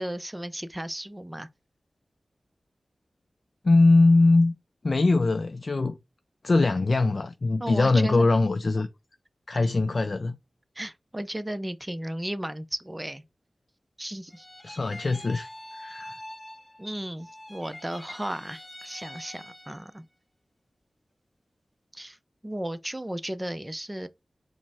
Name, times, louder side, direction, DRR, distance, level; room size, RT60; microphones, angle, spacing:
voice 1, 0.0-1.5 7.6-8.3 10.8-13.2 14.0-14.5 16.8-20.0 21.9-22.2 22.4-24.1, right 1 dB, 15° right, 0.5 m, -35 dB
voice 2, 3.6-4.5 4.8-6.0 6.4-8.9 9.5-10.4 14.6-16.2, left 3 dB, 55° left, 0.4 m, -22 dB
sound 1, 14.3-16.9 17.2-19.9, left 1 dB, 10° left, 1.2 m, -44 dB
5.0 x 2.1 x 3.4 m
wide cardioid pair, 70°, 0 cm